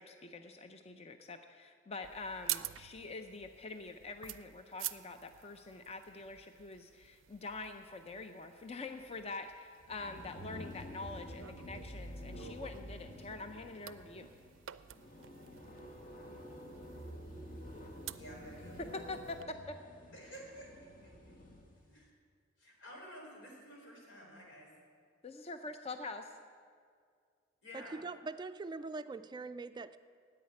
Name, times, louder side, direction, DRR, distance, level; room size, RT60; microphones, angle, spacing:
voice 1, 0.0-14.3 18.8-19.7 25.2-26.3, left 3 dB, 35° left, 7 dB, 0.5 m, -45 dB
sound 1, 2.0-19.4, right 14 dB, 90° right, 0.4 m, -49 dB
sound 2, 9.8-21.8, equal, 50° left, 1.6 m, -49 dB
voice 2, 18.2-18.9 20.1-20.7 21.0-21.1 21.8-22.1 22.6-24.7 27.6-28.0, equal, 90° left, -2 dB, 4.0 m, -51 dB
voice 3, 27.7-30.0, right 3 dB, 25° right, 11 dB, 0.3 m, -42 dB
10.5 x 8.7 x 9.5 m, 2.1 s
head